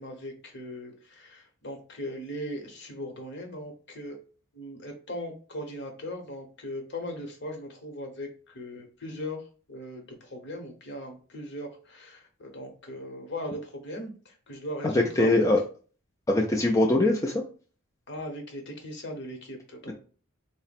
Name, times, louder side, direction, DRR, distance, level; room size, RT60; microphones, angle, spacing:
voice 1, 0.0-4.2 4.5-15.3 18.1-19.9, left 1 dB, 55° left, 3 dB, 1.0 m, -39 dB
voice 2, 14.8-15.6 16.3-17.3, left 1 dB, 15° left, 0 dB, 0.4 m, -22 dB
3.8 x 2.0 x 4.1 m, 0.38 s
head